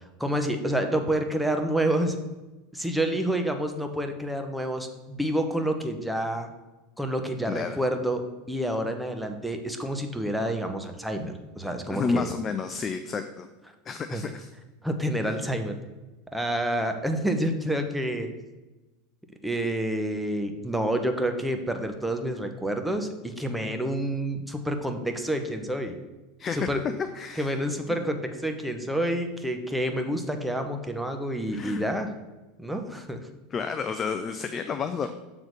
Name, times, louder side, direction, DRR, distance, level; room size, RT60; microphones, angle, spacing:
voice 1, 0.2-2.1 2.7-6.5 7.0-12.3 14.1-14.2 14.8-15.8 16.3-18.3 19.4-25.9 26.5-26.8 27.4-32.1 32.6-33.2, right 1 dB, 5° right, 5 dB, 1.0 m, -28 dB
voice 2, 7.5-7.8 11.9-13.5 13.9-14.5 26.4-26.7 27.0-27.5 31.5-31.8 33.5-35.1, left 5 dB, 30° left, 9 dB, 0.5 m, -30 dB
7.0 x 3.9 x 6.5 m, 1.1 s
hypercardioid pair, 85°, 0 cm